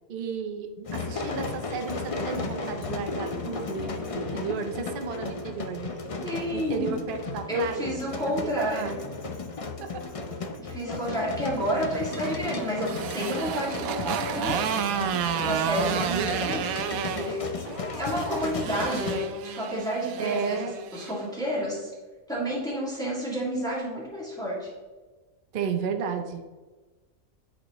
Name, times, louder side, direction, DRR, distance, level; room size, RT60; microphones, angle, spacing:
voice 1, 0.1-5.9 6.5-9.0 9.8-10.0 11.1-11.2 11.6-11.7 15.7-16.4 20.2-20.8 25.5-26.6, right 6 dB, 50° right, 6 dB, 0.7 m, -33 dB
sound 1, 0.8-19.1, left 3 dB, 45° left, 0.4 m, -34 dB
voice 2, 6.2-6.9 7.5-9.0 10.6-14.7 15.4-17.6 18.0-21.9 22.3-24.7, equal, 5° left, -6 dB, 2.0 m, -30 dB
Motorcycle, 11.8-21.2, right 8 dB, 85° right, 1.0 m, -32 dB
11.0 x 4.2 x 3.0 m, 1.3 s
omnidirectional pair, 1.4 m